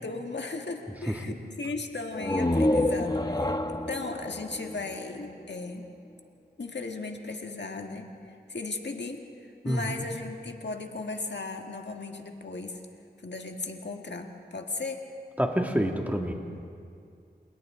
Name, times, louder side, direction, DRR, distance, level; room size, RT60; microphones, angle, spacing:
voice 1, 0.0-5.9 6.6-8.1 8.5-9.3 9.6-12.8 13.2-15.0, left 3 dB, 75° left, 3 dB, 1.7 m, -36 dB
sound 1, 2.1-5.8, left 1 dB, 20° left, 0.9 m, -28 dB
voice 2, 9.6-10.0 15.4-16.3, equal, 10° right, 2 dB, 2.1 m, -28 dB
29.5 x 28.5 x 3.8 m, 2.3 s
wide cardioid pair, 70°, 18 cm